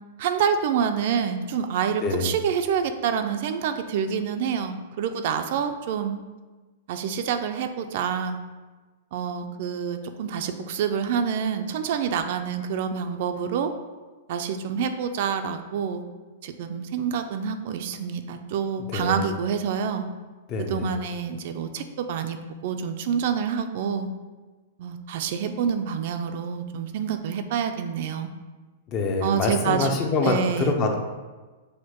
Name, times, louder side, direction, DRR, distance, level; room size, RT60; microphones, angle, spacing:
voice 1, 0.2-6.2 6.9-8.4 9.1-13.7 14.3-16.0 16.4-20.0 20.6-24.1 24.8-28.3 29.2-30.8, right 7 dB, 55° right, 7 dB, 0.3 m, -27 dB
voice 2, 2.0-2.3 18.9-19.2 20.5-20.9 28.9-30.4 30.7-31.0, left 3 dB, 30° left, 4 dB, 0.5 m, -25 dB
6.4 x 2.1 x 2.9 m, 1.3 s
hypercardioid pair, 150°, 0 cm